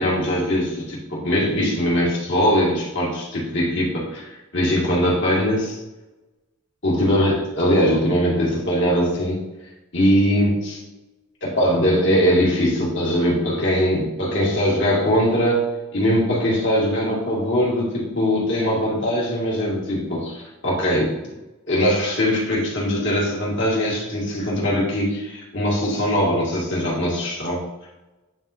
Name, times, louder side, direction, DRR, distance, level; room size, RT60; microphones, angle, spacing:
voice 1, 0.0-5.8 6.8-9.4 9.9-10.8 11.4-15.6 15.9-21.2 21.7-27.6, equal, 55° left, -5 dB, 2.1 m, -21 dB
9.3 x 3.7 x 2.7 m, 1.0 s
head